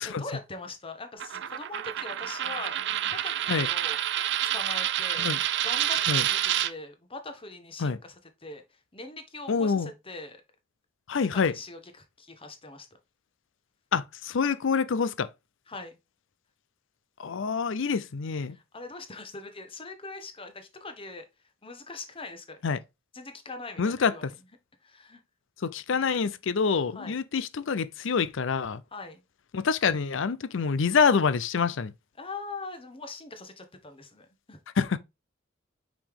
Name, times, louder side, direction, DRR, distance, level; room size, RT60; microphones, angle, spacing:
voice 1, 0.0-2.8 3.1-4.0 4.4-5.3 5.6-10.4 11.4-12.9 15.7-16.0 18.5-21.2 21.6-22.6 23.1-24.4 24.8-25.2 25.9-26.1 26.9-27.2 28.9-29.2 32.2-34.6, left 3 dB, 25° left, 1.1 m, -42 dB
Coin (dropping), 1.2-6.7, right 12 dB, 60° right, 0.4 m, -28 dB
voice 2, 9.5-9.9 11.1-11.5 13.9-15.3 17.2-18.6 22.6-22.8 23.8-24.3 25.6-28.8 29.5-31.9 34.8-35.0, left 5 dB, 65° left, 0.5 m, -26 dB
5.3 x 4.9 x 3.6 m
head